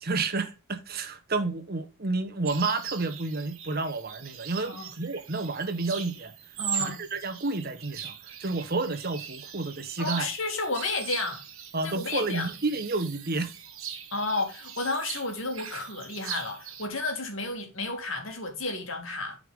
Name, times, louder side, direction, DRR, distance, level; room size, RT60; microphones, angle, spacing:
voice 1, 0.0-6.3 6.7-10.3 11.7-13.5, right 3 dB, 45° right, 1.1 m, -30 dB
sound 1, 2.4-16.9, right 9 dB, 75° right, 1.3 m, -40 dB
voice 2, 6.6-7.0 10.0-11.4 11.8-12.5 14.1-19.4, left 3 dB, 65° left, 2.5 m, -32 dB
8.9 x 4.9 x 3.6 m
head